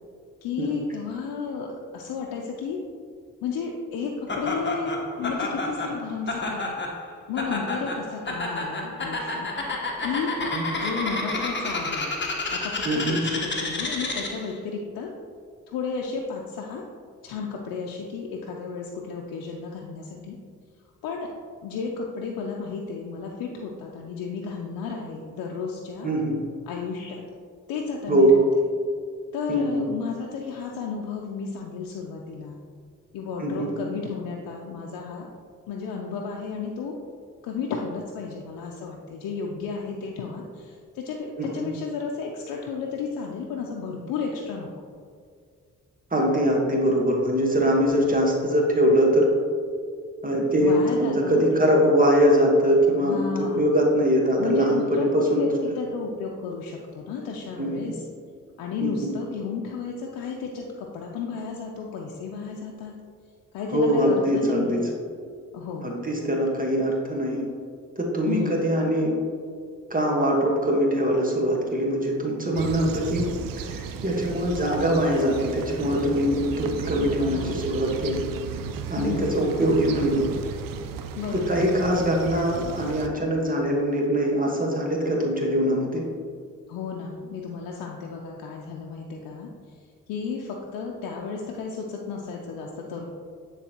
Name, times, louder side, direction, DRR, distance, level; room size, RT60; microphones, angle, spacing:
voice 1, 0.4-1.7 1.9-2.8 3.4-4.9 5.2-6.8 7.3-9.5 10.0-10.3 10.7-12.1 12.5-15.1 15.7-16.8 17.2-20.4 21.0-21.3 21.6-26.1 26.7-27.2 27.7-28.4 29.3-32.6 33.1-35.3 35.7-36.9 37.4-44.7 50.6-51.7 53.0-53.8 54.4-58.0 58.6-63.0 63.5-64.8 65.5-65.9 68.2-68.7 77.2-77.6 78.9-79.5 81.2-81.6 86.7-89.5 90.1-93.1, left 5 dB, 90° left, -1 dB, 0.6 m, -33 dB
Laughter, 4.3-14.5, left 2 dB, 35° left, 1.2 m, -30 dB
voice 2, 12.8-13.2 26.0-26.4 28.1-28.4 29.5-29.9 33.4-33.7 41.4-41.7 46.1-49.3 50.2-55.8 57.6-57.9 58.8-59.1 63.7-64.8 65.8-67.5 68.0-69.2 69.9-73.3 73.7-78.2 78.9-80.3 81.3-86.0, equal, 25° right, -1 dB, 1.4 m, -22 dB
sound 1, 72.5-83.1, right 6 dB, 75° right, 0.6 m, -34 dB
9.3 x 4.0 x 2.9 m, 2.1 s
supercardioid pair, 55°, 34 cm